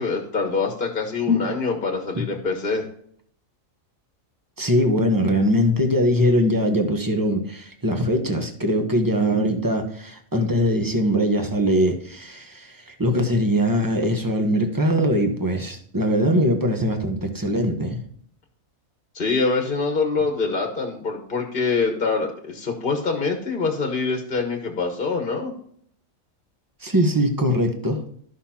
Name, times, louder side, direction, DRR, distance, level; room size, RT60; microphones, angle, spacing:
voice 1, 0.0-2.9 19.1-25.5, left 4 dB, 40° left, 3 dB, 1.4 m, -25 dB
voice 2, 4.6-18.0 26.8-28.0, equal, 15° right, 4 dB, 1.1 m, -21 dB
13.5 x 5.8 x 2.9 m, 0.62 s
omnidirectional pair, 1.4 m